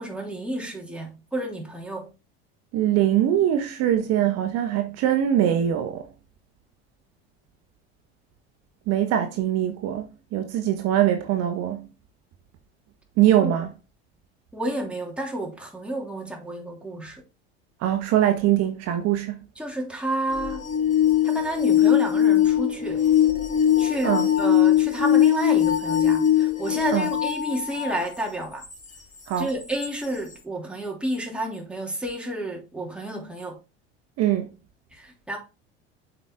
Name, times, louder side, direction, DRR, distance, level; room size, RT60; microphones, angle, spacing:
voice 1, 0.0-2.1 13.4-13.5 14.5-17.2 19.6-20.7 21.2-23.0 23.8-28.6 29.4-33.6 34.9-35.4, right 1 dB, 5° right, 2.9 m, -31 dB
voice 2, 2.7-6.0 8.9-10.0 10.3-11.8 13.2-13.7 17.8-19.4 24.0-24.3 26.9-27.1 29.3-29.5 34.2-34.5, right 11 dB, 55° right, 1.1 m, -22 dB
sound 1, 20.3-28.0 28.7-28.8 29.8-29.9, left 10 dB, 25° left, 1.4 m, -21 dB
7.5 x 5.0 x 3.7 m
hypercardioid pair, 80°, 31 cm